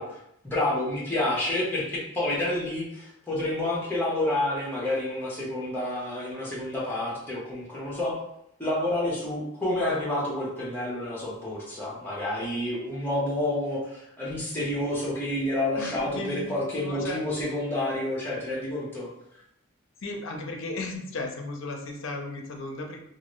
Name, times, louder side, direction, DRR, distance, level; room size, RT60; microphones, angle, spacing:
voice 1, 0.0-8.1 8.6-19.1, left 1 dB, 10° left, -5 dB, 0.8 m, -29 dB
voice 2, 15.7-17.2 20.0-23.0, left 2 dB, 60° left, 2 dB, 0.5 m, -35 dB
2.8 x 2.5 x 3.0 m, 0.76 s
head